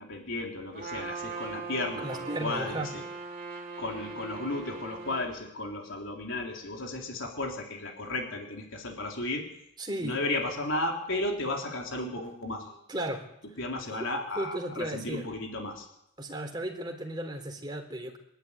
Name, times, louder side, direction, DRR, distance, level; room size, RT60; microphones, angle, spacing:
voice 1, 0.0-3.0 3.8-9.4 10.0-12.8 13.6-15.9, left 2 dB, 70° left, 1 dB, 3.7 m, -34 dB
Trumpet, 0.7-5.3, right 4 dB, 45° right, 3.4 m, -40 dB
voice 2, 2.0-2.9 9.8-10.2 12.9-13.3 14.4-15.3 16.2-18.2, right 1 dB, 20° right, 2 dB, 3.8 m, -35 dB
26.5 x 12.0 x 10.0 m, 0.79 s
head